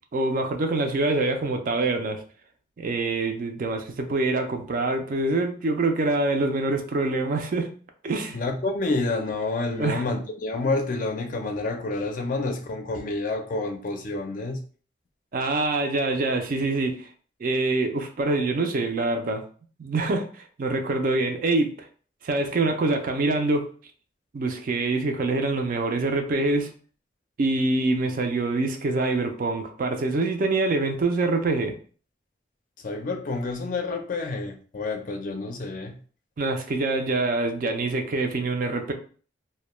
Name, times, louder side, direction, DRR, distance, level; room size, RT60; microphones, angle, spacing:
voice 1, 0.1-2.2 2.8-7.7 8.0-8.4 9.8-10.0 15.3-17.1 17.4-19.4 19.8-21.7 22.2-23.7 24.3-26.7 27.4-31.8 36.4-38.9, right 2 dB, 50° right, 0.4 m, -25 dB
voice 2, 8.3-14.6 32.8-36.0, left 3 dB, 50° left, 0.4 m, -29 dB
2.1 x 2.1 x 3.0 m
head